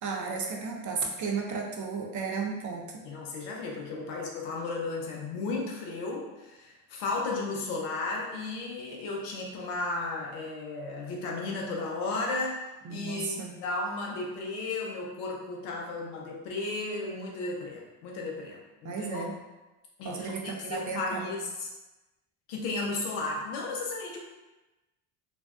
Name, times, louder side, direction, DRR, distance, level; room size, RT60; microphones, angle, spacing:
voice 1, 0.0-3.0 12.8-13.6 18.8-19.3 20.0-21.3, right 5 dB, 40° right, 0 dB, 0.5 m, -34 dB
voice 2, 3.0-12.6 12.9-19.3 20.0-20.3 20.7-21.7 22.5-24.2, left 3 dB, 85° left, -1 dB, 0.7 m, -34 dB
2.5 x 2.1 x 2.3 m, 1.1 s
supercardioid pair, 75°, 50 cm